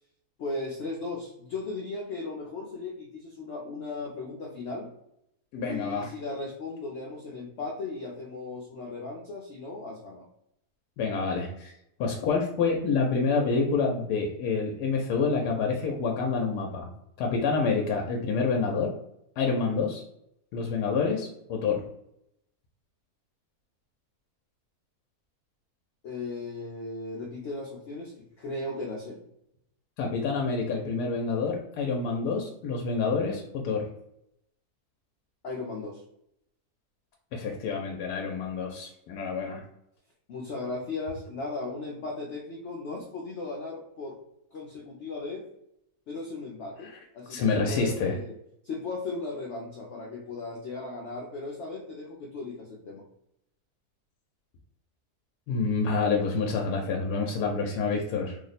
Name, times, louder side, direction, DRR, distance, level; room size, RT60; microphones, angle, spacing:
voice 1, 0.4-4.9 5.6-10.3 26.0-29.2 35.4-36.0 40.3-44.2 44.5-45.5 46.1-48.3 48.6-53.0, left 3 dB, 60° left, -1 dB, 0.8 m, -37 dB
voice 2, 5.5-6.1 11.0-11.7 12.0-16.9 17.2-18.9 19.4-20.0 20.5-21.8 30.0-33.9 37.3-39.6 46.9-47.0 47.3-48.1 55.5-58.4, left 4 dB, 90° left, 0 dB, 1.1 m, -27 dB
2.9 x 2.1 x 3.9 m, 0.78 s
omnidirectional pair, 1.7 m